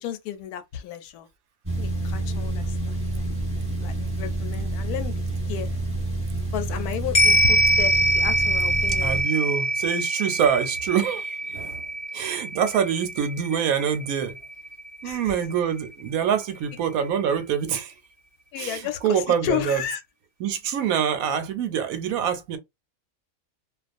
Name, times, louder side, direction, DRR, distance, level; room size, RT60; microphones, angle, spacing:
voice 1, 0.0-1.3 1.8-3.3 3.8-5.7 6.5-9.1 15.0-15.2 18.5-20.0, left 10 dB, 85° left, 1.1 m, -33 dB
sound 1, 1.7-9.2, right 2 dB, 10° right, 1.0 m, -29 dB
sound 2, 7.1-15.7 16.1-16.2, right 1 dB, 45° left, 0.9 m, -24 dB
voice 2, 9.0-11.8 12.1-14.3 15.0-17.9 18.6-19.8 20.4-22.6, right 8 dB, 75° right, 1.0 m, -25 dB
2.3 x 2.3 x 2.4 m
omnidirectional pair, 1.6 m